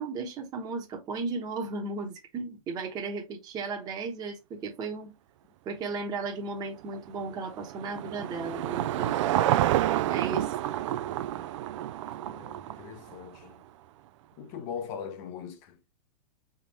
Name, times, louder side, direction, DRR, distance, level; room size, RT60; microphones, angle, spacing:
voice 1, 0.0-5.1 5.6-9.1 10.1-10.5, right 4 dB, 20° right, 1.1 m, -35 dB
Car passing by / Engine, 6.9-13.4, right 13 dB, 55° right, 0.4 m, -29 dB
voice 2, 12.2-13.6 14.4-15.8, left 7 dB, 40° left, 0.8 m, -40 dB
4.0 x 3.7 x 3.0 m
supercardioid pair, 160°, 18 cm